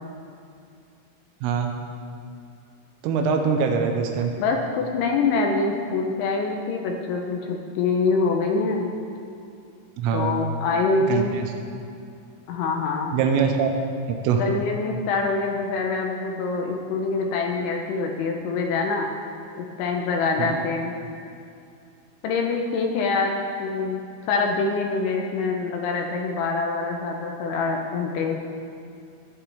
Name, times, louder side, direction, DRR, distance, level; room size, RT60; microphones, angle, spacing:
voice 1, 3.0-4.3 10.0-10.3 11.1-11.2 13.1-13.7 14.2-14.4 20.4-20.6, right 6 dB, 85° right, 4 dB, 3.4 m, -23 dB
voice 2, 4.4-8.9 10.1-11.4 12.5-13.2 14.4-19.1 19.6-20.9 22.2-24.0 24.3-28.4, left 4 dB, 80° left, 1 dB, 2.9 m, -25 dB
21.5 x 8.4 x 3.4 m, 2.5 s
omnidirectional pair, 5.9 m